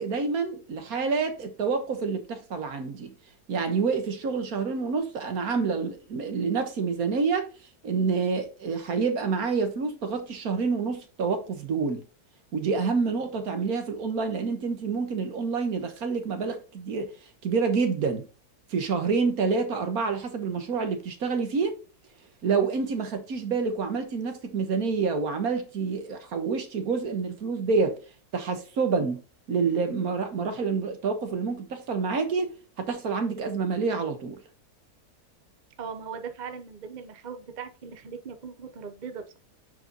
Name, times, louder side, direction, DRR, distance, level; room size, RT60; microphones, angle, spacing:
voice 1, 0.0-3.2 3.5-7.5 7.8-12.0 12.5-17.1 17.4-18.3 18.7-21.8 22.4-28.0 28.3-29.2 29.5-34.4, right 5 dB, 70° right, 1.7 m, -28 dB
voice 2, 35.8-39.4, right 6 dB, 35° right, 0.8 m, -39 dB
9.2 x 4.9 x 2.9 m
omnidirectional pair, 1.7 m